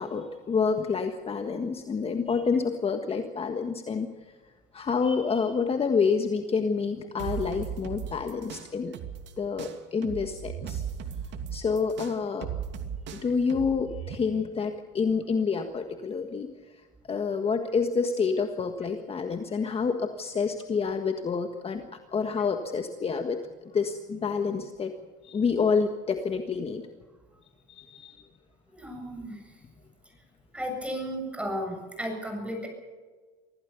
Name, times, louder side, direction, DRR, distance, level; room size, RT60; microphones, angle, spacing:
voice 1, 0.0-4.1 4.7-8.9 9.4-10.8 11.5-12.5 13.1-16.5 17.1-21.8 22.1-23.5 23.7-25.0 25.2-26.8 27.7-28.2, left 5 dB, 25° left, 6 dB, 1.6 m, -28 dB
sound 1, 7.2-9.3 9.6-14.1, right 8 dB, 60° right, 2.7 m, -36 dB
voice 2, 28.7-29.6 30.5-32.7, equal, 5° right, 2 dB, 7.3 m, -34 dB
25.0 x 16.0 x 7.0 m, 1.4 s
cardioid pair, 120°, 21 cm